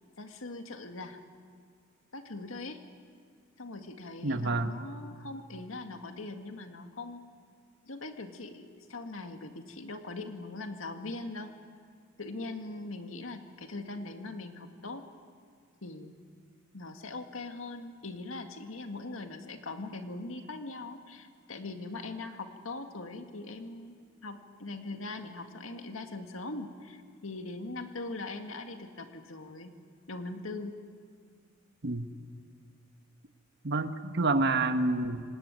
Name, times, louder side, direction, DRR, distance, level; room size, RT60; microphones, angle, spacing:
voice 1, 0.2-1.2 2.1-2.8 3.6-7.2 7.8-11.5 12.2-15.0 15.8-16.2 16.7-29.7 30.1-30.7, left 2 dB, 80° left, 6 dB, 2.1 m, -41 dB
voice 2, 4.2-4.7 31.8-32.1 33.6-35.2, right 2 dB, 55° right, 8 dB, 1.3 m, -28 dB
26.5 x 18.5 x 9.2 m, 2.1 s
head